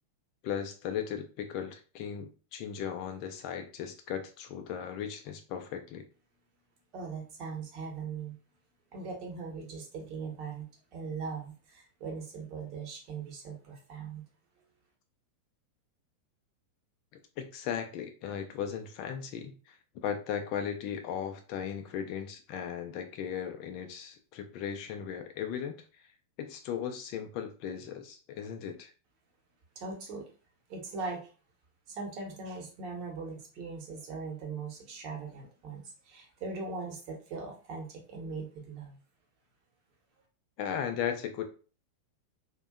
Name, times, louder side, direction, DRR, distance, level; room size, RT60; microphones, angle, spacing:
voice 1, 0.4-6.0 17.4-25.7 26.4-28.9 40.6-41.4, left 8 dB, 45° left, 6 dB, 0.4 m, -37 dB
voice 2, 6.9-8.3 8.9-14.2 29.7-30.2 30.7-31.3 31.9-39.0, right 4 dB, 40° right, 1 dB, 0.9 m, -40 dB
2.5 x 2.2 x 2.4 m, 0.36 s
figure-of-eight pair, 90°, 0 cm